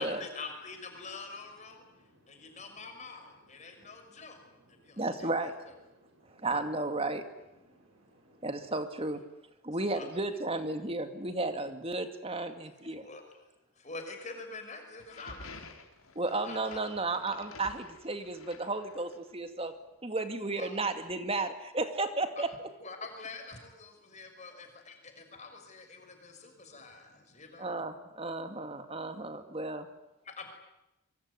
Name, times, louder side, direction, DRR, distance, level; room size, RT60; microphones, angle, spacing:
voice 1, 0.0-1.8 2.3-4.4 4.7-5.3 9.9-10.1 13.0-13.2 13.8-15.7 16.4-16.8 20.6-20.7 22.4-22.5 22.8-27.7 30.2-30.5, left 3 dB, 35° left, 5 dB, 5.9 m, -45 dB
voice 2, 2.0-2.5 3.8-3.9 4.8-5.0 6.0-6.5 7.7-8.4, right 1 dB, 60° right, 5 dB, 7.3 m, -64 dB
voice 3, 5.0-5.5 6.2-7.2 8.4-9.2 9.6-13.1 16.1-19.7 20.0-22.5 27.6-29.9, right 2 dB, 25° right, 8 dB, 2.2 m, -33 dB
sound 1, 15.0-19.3, left 3 dB, 80° left, 3.9 m, -50 dB
25.0 x 23.5 x 9.7 m, 0.90 s
head